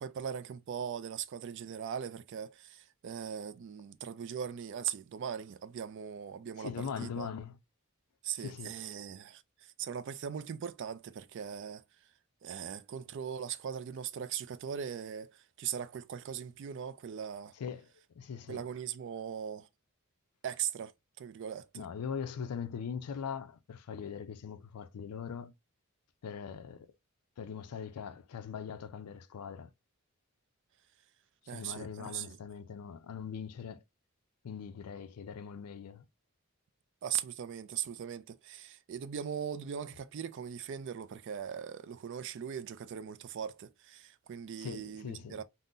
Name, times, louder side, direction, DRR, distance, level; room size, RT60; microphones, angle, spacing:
voice 1, 0.0-7.3 8.2-11.8 12.4-17.5 18.5-19.7 20.4-20.9 21.2-21.8 31.5-32.4 37.0-45.4, right 8 dB, 55° right, 0.3 m, -40 dB
voice 2, 6.6-7.6 8.4-8.8 17.5-17.9 18.1-18.6 21.7-25.5 26.2-26.9 27.4-29.7 31.4-33.8 34.4-36.1 44.6-45.4, left 7 dB, 90° left, 0.4 m, -41 dB
3.7 x 2.0 x 2.5 m
head